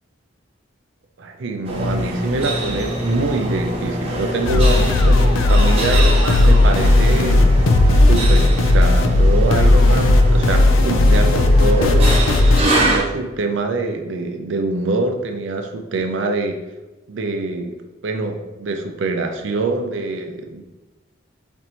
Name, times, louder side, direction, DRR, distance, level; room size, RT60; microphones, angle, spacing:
voice 1, 1.2-7.4 8.0-12.1 12.7-16.6 17.1-17.8 18.0-20.6, right 3 dB, 75° right, 4 dB, 0.5 m, -24 dB
sound 1, 1.6-13.0, right 1 dB, 30° right, 0.7 m, -24 dB
sound 2, 4.5-12.6, left 2 dB, 85° left, 0.4 m, -14 dB
4.3 x 2.6 x 4.3 m, 1.1 s
head